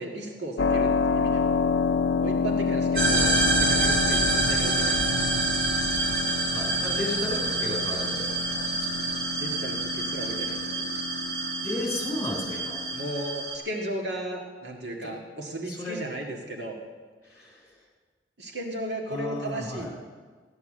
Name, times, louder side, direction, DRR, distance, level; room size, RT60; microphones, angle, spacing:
voice 1, 0.0-1.6 2.2-5.3 9.4-11.0 12.9-16.8 18.4-19.9, right 1 dB, 75° right, 0 dB, 2.0 m, -35 dB
Keyboard (musical), 0.6-13.1, left 5 dB, 75° left, 0.5 m, -29 dB
sound 1, 3.0-13.6, right 3 dB, 50° right, 2.4 m, -27 dB
voice 2, 6.5-9.2 11.6-12.8 15.0-15.1 15.7-16.0 17.3-17.6 19.1-19.9, left 2 dB, 15° left, -1 dB, 3.5 m, -34 dB
15.0 x 10.5 x 7.6 m, 1.5 s
head